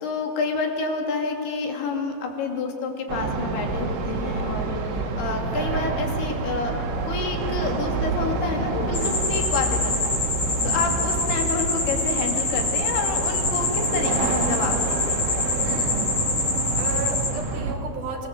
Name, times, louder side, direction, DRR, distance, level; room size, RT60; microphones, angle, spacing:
voice 1, 0.0-6.8 7.0-10.2 10.6-15.2, left 4 dB, 65° left, 2 dB, 4.2 m, -29 dB
sound 1, 3.1-17.8, right 3 dB, 80° right, 4.4 m, -28 dB
sound 2, 8.9-17.3, left 3 dB, 20° left, 4.0 m, -26 dB
voice 2, 15.6-16.2 16.8-18.3, right 4 dB, 50° right, 1 dB, 3.4 m, -34 dB
28.5 x 20.0 x 7.7 m, 3.0 s
omnidirectional pair, 5.3 m